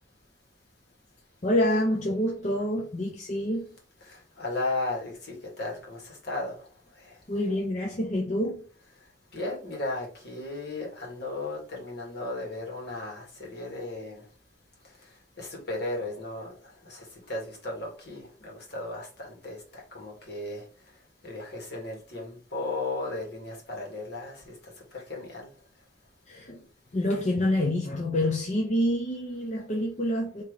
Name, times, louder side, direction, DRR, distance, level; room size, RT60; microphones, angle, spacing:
voice 1, 1.4-3.7 7.3-8.6 26.3-26.6 26.9-30.4, left 1 dB, 40° left, 0.6 m, -27 dB
voice 2, 4.0-6.7 7.0-7.2 9.3-14.2 15.4-16.5 16.8-20.6 21.2-25.5, left 2 dB, 65° left, 1.7 m, -35 dB
3.4 x 2.9 x 4.6 m
head